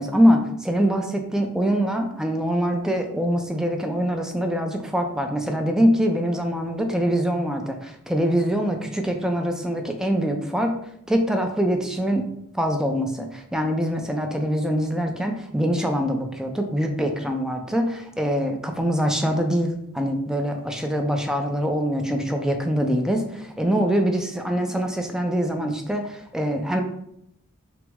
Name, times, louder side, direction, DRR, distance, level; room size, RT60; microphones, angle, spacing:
voice 1, 0.0-10.7 11.1-12.3 12.5-26.8, equal, 5° right, 4 dB, 0.4 m, -24 dB
5.9 x 2.0 x 3.5 m, 0.76 s
head